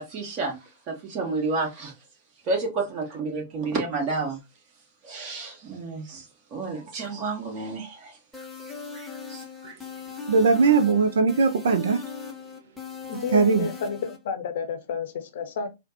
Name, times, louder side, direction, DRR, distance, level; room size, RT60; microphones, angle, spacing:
voice 1, 0.0-1.9 2.4-4.4 5.0-6.3 6.5-8.2 8.9-9.7, right 3 dB, 35° right, 1.3 m, -31 dB
sound 1, 8.3-14.2, left 5 dB, 5° left, 0.7 m, -38 dB
voice 2, 10.3-12.0 13.3-13.7, right 4 dB, 60° right, 0.4 m, -20 dB
voice 3, 13.1-15.7, left 6 dB, 55° left, 0.6 m, -31 dB
4.0 x 2.1 x 2.7 m
figure-of-eight pair, 105°, 0 cm